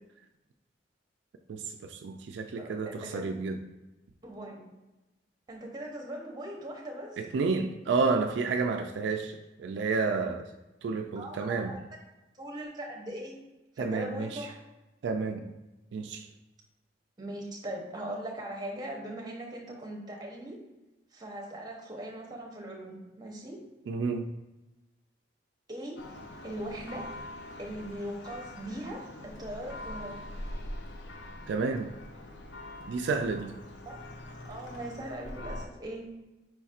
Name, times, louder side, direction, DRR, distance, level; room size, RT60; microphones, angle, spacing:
voice 1, 1.5-3.6 7.2-10.5 10.8-11.8 13.8-14.5 15.0-15.5 15.9-16.3 23.9-24.3 31.5-31.9 32.9-33.5, right 4 dB, 75° right, 5 dB, 0.3 m, -30 dB
voice 2, 2.6-3.2 4.2-4.7 5.5-7.2 11.2-11.8 12.4-13.4 13.8-14.5 17.2-20.6 21.1-23.6 25.7-26.0 26.4-27.1 27.6-30.2 33.8-33.9 34.4-36.1, right 1 dB, 25° right, 0 dB, 0.8 m, -40 dB
Church bell, 26.0-35.7, left 1 dB, 75° left, 0.6 m, -43 dB
4.9 x 4.1 x 2.4 m, 1.0 s
head